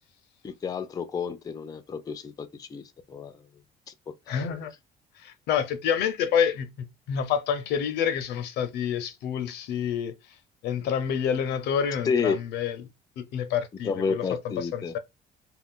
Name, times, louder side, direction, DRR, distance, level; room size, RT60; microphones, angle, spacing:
voice 1, 0.4-2.8 3.1-3.4 4.3-4.6 12.1-12.4 13.8-14.9, left 5 dB, 20° left, 0.4 m, -30 dB
voice 2, 4.3-4.7 5.2-6.7 7.1-10.1 10.6-12.8 13.2-15.0, left 8 dB, 80° left, 0.6 m, -28 dB
2.4 x 2.2 x 3.6 m
cardioid pair, 110°, 17 cm